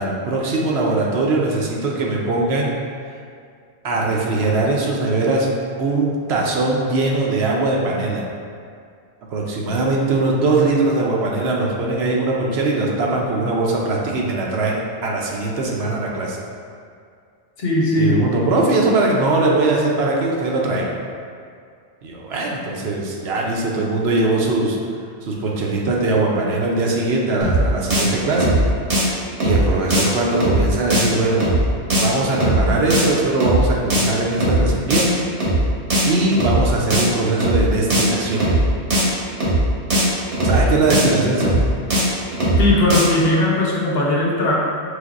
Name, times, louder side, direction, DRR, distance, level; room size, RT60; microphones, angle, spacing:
voice 1, 0.0-2.7 3.8-5.5 5.8-8.3 9.3-16.4 18.0-20.9 22.0-24.8 25.2-28.6 29.4-31.5 32.0-35.2 36.0-38.5 40.4-41.6, right 2 dB, 70° right, -2 dB, 0.9 m, -20 dB
voice 2, 17.6-18.2 42.6-44.5, left 1 dB, 65° left, -4 dB, 1.0 m, -18 dB
sound 1, 27.4-27.6 27.9-28.0 28.3-28.6 28.9-29.0 29.4-29.6 29.9-30.0 30.3-30.6 30.9-31.0 31.4-31.6 31.9-32.0 32.3-32.6 32.9-33.0 33.4-33.6 33.9-34.0 34.3-34.6 34.9-35.0 35.4-35.6 35.9-36.0 36.3-36.6 36.9-37.0 37.4-37.6 37.9-38.0 38.3-38.6 38.9-39.0 39.4-39.6 39.9-40.0 40.3-40.6 40.9-41.0 41.4-41.6 41.9-42.0 42.3-42.6 42.9-43.0, right 1 dB, 90° right, 1.4 m, -18 dB
5.1 x 3.3 x 2.5 m, 2.2 s
omnidirectional pair, 1.1 m